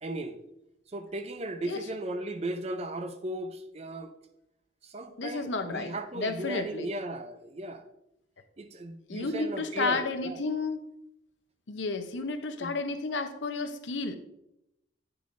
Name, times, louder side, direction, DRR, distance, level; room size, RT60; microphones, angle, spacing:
voice 1, 0.0-0.4 0.9-4.1 4.8-7.8 8.6-10.4 12.6-12.7, right 2 dB, 35° right, 0.5 m, -36 dB
voice 2, 5.2-6.9 9.1-10.8 11.7-14.2, left 3 dB, 70° left, 0.7 m, -32 dB
9.1 x 6.8 x 2.6 m
head